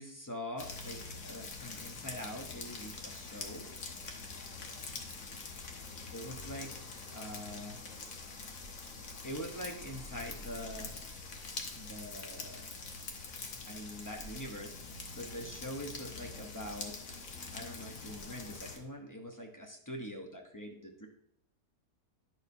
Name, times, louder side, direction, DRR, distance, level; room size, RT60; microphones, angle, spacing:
voice 1, 0.0-3.7 6.1-7.8 9.2-11.0 11.7-12.7 13.6-17.0 17.5-21.1, equal, 20° left, 2 dB, 0.6 m, -44 dB
sound 1, 0.6-18.8, left 4 dB, 60° left, 1.4 m, -45 dB
10.5 x 6.5 x 2.7 m, 0.69 s
omnidirectional pair, 1.7 m